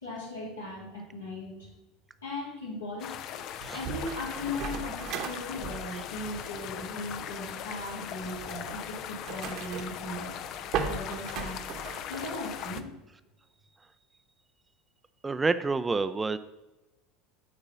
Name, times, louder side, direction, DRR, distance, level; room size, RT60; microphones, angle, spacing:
voice 1, 0.0-1.7 2.2-3.4 3.7-10.4 10.9-11.6 12.1-12.9, left 2 dB, 80° left, -5 dB, 3.0 m, -38 dB
sound 1, 3.0-12.8, left 10 dB, 50° left, 0.5 m, -40 dB
sound 2, 3.6-12.8, right 6 dB, 50° right, 1.1 m, -39 dB
voice 2, 15.2-16.4, right 4 dB, 15° right, 12 dB, 0.4 m, -28 dB
8.9 x 4.0 x 6.6 m, 1.0 s
figure-of-eight pair, 70°, 0 cm